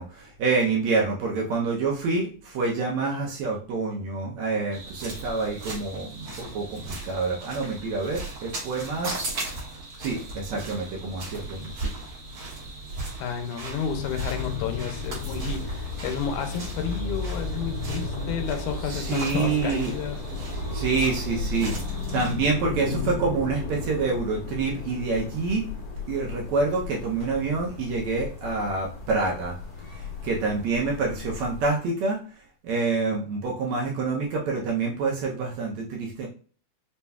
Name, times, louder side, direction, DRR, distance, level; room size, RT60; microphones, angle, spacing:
voice 1, 0.0-9.2 10.0-11.9 18.9-19.9 20.7-21.7 22.1-25.7 26.1-29.6 29.9-32.2 32.6-36.3, right 4 dB, 75° right, -2 dB, 1.8 m, -27 dB
sound 1, 4.7-22.4, right 2 dB, 50° right, 2.0 m, -37 dB
voice 2, 13.2-20.2, left 7 dB, 80° left, 6 dB, 2.0 m, -31 dB
sound 2, 13.9-31.7, left 4 dB, 60° left, 1.8 m, -34 dB
5.5 x 3.1 x 2.3 m, 0.41 s
omnidirectional pair, 3.7 m